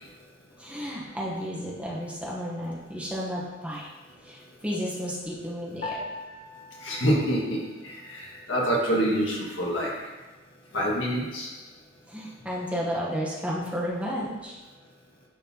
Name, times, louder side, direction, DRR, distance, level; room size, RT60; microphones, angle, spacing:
voice 1, 0.6-3.9 4.2-6.0 12.1-14.6, equal, 5° right, -5 dB, 1.0 m, -32 dB
Piano, 5.8-8.3, left 2 dB, 50° left, 1.5 m, -41 dB
voice 2, 6.8-7.6 7.8-9.9 10.7-11.5, equal, 70° left, -4 dB, 1.7 m, -26 dB
10.0 x 4.1 x 2.9 m, 1.2 s
head